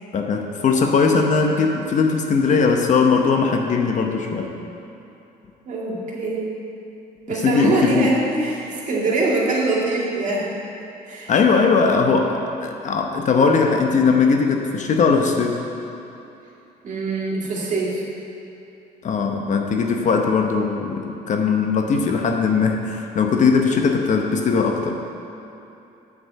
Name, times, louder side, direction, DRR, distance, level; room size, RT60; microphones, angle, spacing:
voice 1, 0.1-4.5 7.4-8.1 11.3-15.6 19.0-25.0, left 5 dB, 45° left, 3 dB, 0.9 m, -19 dB
voice 2, 5.7-6.5 7.3-10.5 11.0-11.3 16.8-18.0, right 3 dB, 50° right, -4 dB, 2.1 m, -23 dB
7.9 x 5.1 x 7.5 m, 2.9 s
cardioid pair, 110°, 17 cm